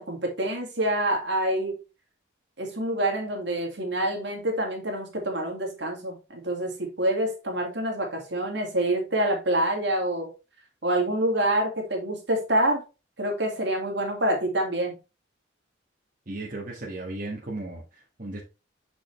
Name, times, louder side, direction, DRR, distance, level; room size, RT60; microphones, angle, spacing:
voice 1, 0.0-1.8 2.6-10.3 10.8-12.8 13.2-15.0, right 1 dB, 60° right, 2.3 m, -26 dB
voice 2, 16.3-18.4, right 2 dB, 45° right, 1.6 m, -35 dB
6.8 x 5.2 x 3.3 m
head